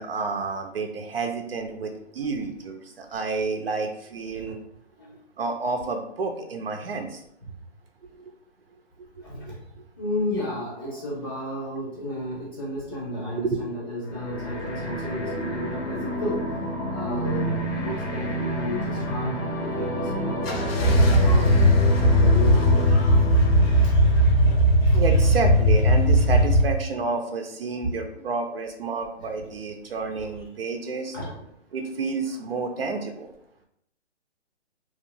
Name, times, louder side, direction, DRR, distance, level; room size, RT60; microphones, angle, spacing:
voice 1, 0.0-4.6 5.4-7.2 9.4-9.5 13.4-13.6 24.9-31.2 31.7-33.3, right 4 dB, 55° right, 5 dB, 0.5 m, -30 dB
voice 2, 9.2-9.6 10.0-16.5 16.9-21.5 21.9-24.5 24.8-25.2 27.8-28.2 29.2-29.3 31.1-31.5, left 1 dB, 20° left, -5 dB, 0.7 m, -33 dB
sound 1, 14.1-24.6, equal, 85° left, 0.8 m, -30 dB
sound 2, 20.5-26.6, equal, 55° left, 0.6 m, -18 dB
2.8 x 2.3 x 2.5 m, 0.73 s
hypercardioid pair, 150°, 35 cm